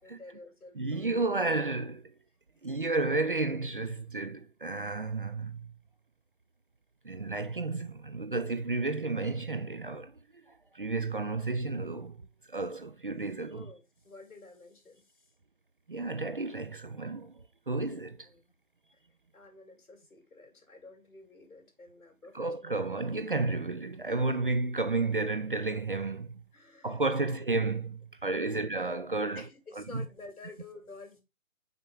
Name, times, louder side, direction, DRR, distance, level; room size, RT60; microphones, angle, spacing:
voice 1, 0.0-1.4 13.5-15.3 18.3-18.5 19.3-22.8 26.5-27.0 27.4-27.5 28.2-28.6 29.3-31.2, left 3 dB, 85° left, 2.9 m, -51 dB
voice 2, 0.8-2.1 2.6-5.7 7.0-10.1 10.7-13.7 15.9-17.3 17.7-18.3 22.3-26.4 26.8-29.4 29.8-30.0, right 3 dB, 40° right, 0.4 m, -32 dB
5.8 x 5.2 x 3.6 m
figure-of-eight pair, 150°, 42 cm